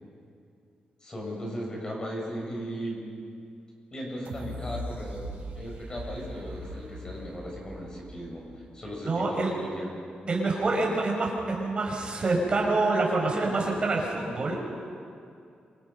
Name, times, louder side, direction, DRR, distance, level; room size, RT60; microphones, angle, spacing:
voice 1, 1.0-3.0 3.9-5.2 5.5-8.4 8.7-9.9, equal, 25° left, -1 dB, 6.7 m, -37 dB
sound 1, 4.2-9.1 9.6-9.7, equal, 80° right, 7.1 m, -40 dB
voice 2, 9.1-9.5 10.3-14.6, right 3 dB, 35° right, -1 dB, 6.1 m, -26 dB
28.0 x 26.0 x 5.6 m, 2.4 s
wide cardioid pair, 150°, 3 cm